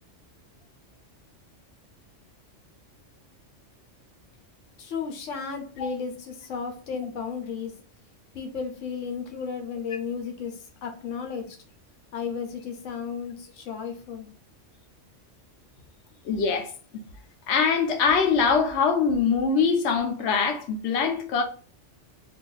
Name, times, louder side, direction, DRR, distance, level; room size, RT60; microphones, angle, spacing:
voice 1, 4.8-7.7 8.3-11.6 12.1-14.3, left 6 dB, 90° left, 1.1 m, -34 dB
voice 2, 16.2-16.7 17.5-21.4, left 5 dB, 70° left, 0.9 m, -23 dB
2.5 x 2.4 x 3.8 m
omnidirectional pair, 1.3 m